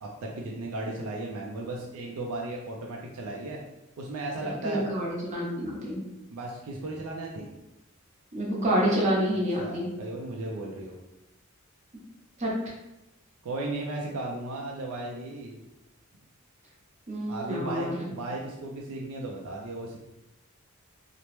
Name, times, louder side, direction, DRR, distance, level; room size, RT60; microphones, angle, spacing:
voice 1, 0.0-3.6 4.0-4.8 6.3-7.5 9.3-11.0 13.4-15.6 17.3-20.0, right 2 dB, 85° right, -1 dB, 0.4 m, -35 dB
voice 2, 4.6-6.0 8.3-9.9 12.4-12.5 17.1-18.1, equal, 35° right, -4 dB, 0.8 m, -28 dB
3.0 x 2.0 x 3.0 m, 0.94 s
head